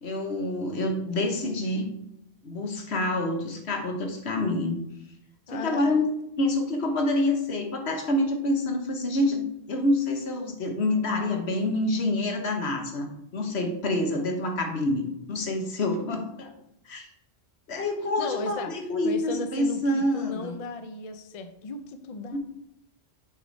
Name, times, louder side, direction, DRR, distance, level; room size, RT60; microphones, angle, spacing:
voice 1, 0.0-1.8 2.4-4.8 5.5-6.1 6.4-16.5 16.9-17.1 17.7-20.5 22.3-22.4, left 2 dB, 75° left, 3 dB, 1.4 m, -27 dB
voice 2, 5.5-6.1 18.2-18.7 19.0-22.4, left 2 dB, 40° left, 8 dB, 0.6 m, -35 dB
7.4 x 4.8 x 4.1 m, 0.81 s
omnidirectional pair, 1.1 m